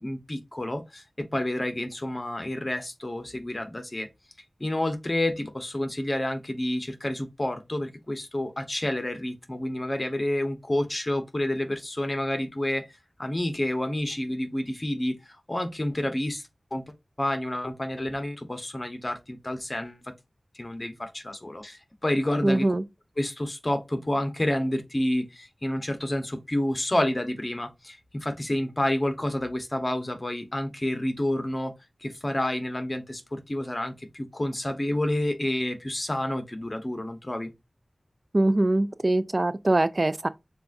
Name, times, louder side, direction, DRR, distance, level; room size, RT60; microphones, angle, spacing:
voice 1, 0.0-4.1 4.6-20.0 20.5-22.7 23.2-31.7 32.0-37.5, left 1 dB, 35° left, 1.1 m, -29 dB
voice 2, 22.4-22.8 38.3-40.3, right 2 dB, 45° right, 0.4 m, -23 dB
6.9 x 2.5 x 2.5 m
wide cardioid pair, 40°, 0 cm